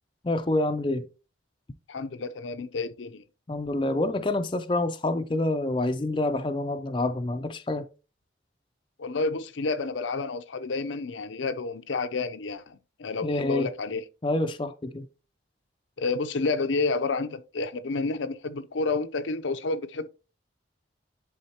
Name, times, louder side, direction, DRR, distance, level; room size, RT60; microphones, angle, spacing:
voice 1, 0.2-1.1 3.5-7.8 13.2-13.7 14.2-15.1, left 2 dB, 25° left, 0.4 m, -27 dB
voice 2, 1.9-3.2 9.0-14.0 16.0-20.1, left 3 dB, 80° left, 0.6 m, -30 dB
11.0 x 3.9 x 2.8 m
head